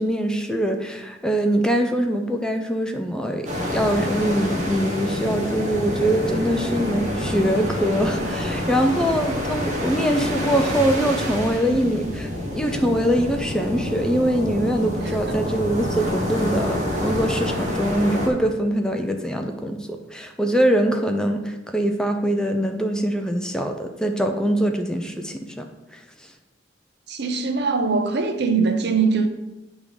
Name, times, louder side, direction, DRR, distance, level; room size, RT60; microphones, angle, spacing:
voice 1, 0.0-12.3 12.6-25.6 25.9-26.0, right 1 dB, 5° left, 0.5 m, -23 dB
sound 1, 3.4-18.3, left 1 dB, 40° right, 1.3 m, -27 dB
voice 2, 27.1-29.3, right 4 dB, 60° right, 0.7 m, -22 dB
8.2 x 3.6 x 5.2 m
head